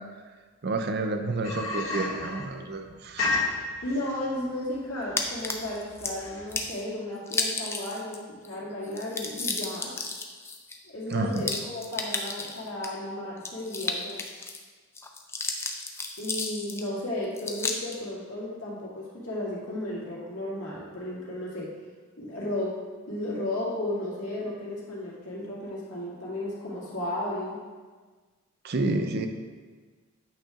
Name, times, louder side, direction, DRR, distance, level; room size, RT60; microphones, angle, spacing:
voice 1, 0.6-3.7 11.1-11.5 28.6-29.3, right 2 dB, 45° right, 6 dB, 0.5 m, -30 dB
sound 1, 1.4-6.6, left 3 dB, 65° left, 1.7 m, -32 dB
voice 2, 3.8-8.2 8.4-9.9 10.9-14.2 16.2-21.7 22.2-22.7 23.1-27.6, left 1 dB, 85° left, -6 dB, 2.0 m, -34 dB
sound 2, 5.2-6.1 6.5-6.8 7.3-8.2 8.4-8.5 8.8-12.9 13.4-14.6 15.0-16.9 17.4-18.0, left 3 dB, 10° left, 0.3 m, -32 dB
8.6 x 5.8 x 2.5 m, 1.4 s
head